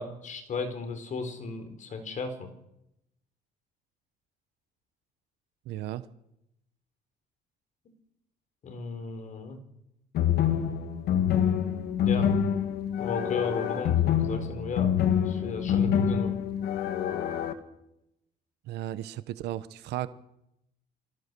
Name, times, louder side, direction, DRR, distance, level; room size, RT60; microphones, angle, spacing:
voice 1, 0.0-2.5 8.6-9.6 11.9-12.3 13.0-16.3, left 4 dB, 45° left, 7 dB, 4.2 m, -35 dB
voice 2, 5.7-6.1 18.7-20.1, right 13 dB, 80° right, 14 dB, 1.0 m, -35 dB
sound 1, 10.1-17.5, left 9 dB, 70° left, 2.0 m, -26 dB
24.0 x 16.0 x 6.9 m, 0.84 s
cardioid pair, 110°, 17 cm